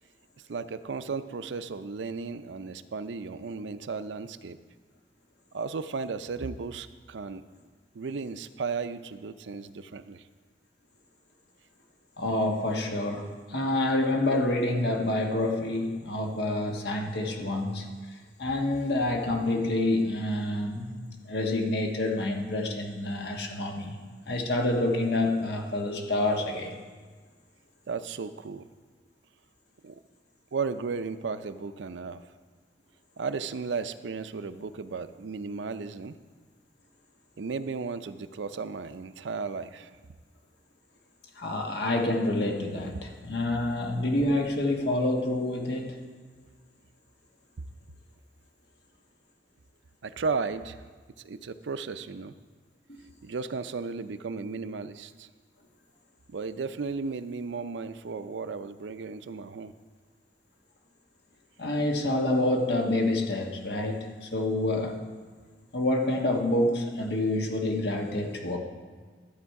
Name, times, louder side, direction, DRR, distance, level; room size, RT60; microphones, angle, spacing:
voice 1, 0.5-4.6 5.5-7.4 7.9-10.2 27.9-28.6 29.8-30.0 30.5-32.2 33.2-36.2 37.4-40.0 50.0-50.8 51.2-52.3 53.2-55.3 56.3-59.7, right 4 dB, 85° right, 12 dB, 0.5 m, -35 dB
voice 2, 12.2-20.9 21.2-24.0 24.2-26.7 41.3-46.0 52.9-53.0 61.6-65.0 65.7-68.6, left 1 dB, 65° left, 2 dB, 1.4 m, -28 dB
12.5 x 7.9 x 4.7 m, 1.5 s
head